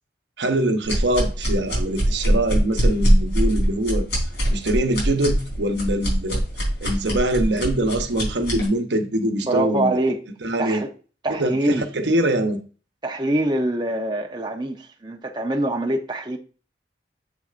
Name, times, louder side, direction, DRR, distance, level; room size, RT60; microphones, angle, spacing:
voice 1, 0.4-4.1 4.5-6.4 6.8-10.0 10.4-10.8 11.3-12.6, right 1 dB, 85° right, 1.0 m, -23 dB
sound 1, 0.9-8.7, equal, 75° left, 3.9 m, -22 dB
voice 2, 9.4-10.2 10.6-10.9 11.2-11.8 13.0-16.4, right 1 dB, 25° right, 0.7 m, -24 dB
7.5 x 6.4 x 2.5 m
head